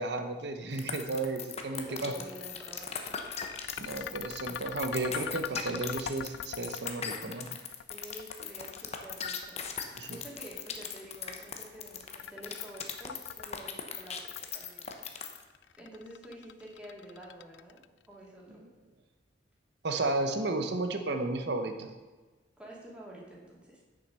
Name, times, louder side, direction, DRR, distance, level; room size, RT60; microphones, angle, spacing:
voice 1, 0.0-2.1 3.8-7.5 10.0-10.2 18.6-18.7 19.8-21.9, right 2 dB, 65° right, 6 dB, 1.0 m, -33 dB
sound 1, 0.8-15.4, left 7 dB, 35° left, 0.8 m, -38 dB
voice 2, 1.7-3.2 7.9-14.9 15.8-17.8 18.1-18.6 22.6-23.8, right 1 dB, 5° right, -5 dB, 2.3 m, -49 dB
sound 2, 1.9-18.1, left 8 dB, 65° left, 0.3 m, -44 dB
9.0 x 6.7 x 5.6 m, 1.3 s
head